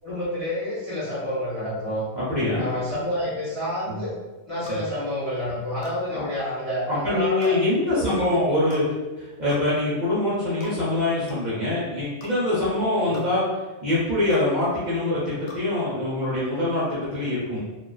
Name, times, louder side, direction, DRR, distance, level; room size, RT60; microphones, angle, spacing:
voice 1, 0.0-2.0 2.6-4.1 4.5-7.6 7.9-8.1 13.0-13.3, equal, 30° left, -10 dB, 0.7 m, -29 dB
voice 2, 2.1-2.7 3.9-4.0 4.7-4.8 6.1-6.3 6.9-8.8 9.2-13.4 13.8-17.6, left 2 dB, 45° right, -9 dB, 0.7 m, -24 dB
sound 1, 4.6-4.8 5.8-6.0 7.4-7.6 8.7-8.9 9.5-9.7 10.6-10.8 11.3-11.4 12.2-12.3 13.1-13.3 14.3-14.5 15.5-15.6, left 2 dB, 70° left, 0.4 m, -42 dB
2.3 x 2.3 x 2.2 m, 1.2 s
omnidirectional pair, 1.3 m